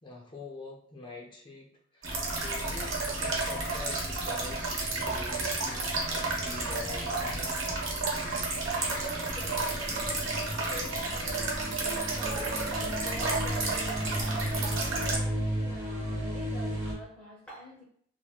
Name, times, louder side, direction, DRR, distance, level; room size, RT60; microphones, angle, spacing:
voice 1, 0.0-1.7 1.9-7.6, left 3 dB, 25° left, 0 dB, 0.5 m, -44 dB
sound 1, 2.0-15.2, right 3 dB, 85° right, 0.9 m, -31 dB
sound 2, 4.5-5.3 8.9-16.9, equal, 35° right, 0.9 m, -35 dB
voice 2, 8.8-14.3 14.8-17.8, equal, 10° left, -8 dB, 0.9 m, -46 dB
3.1 x 2.6 x 2.2 m, 0.63 s
head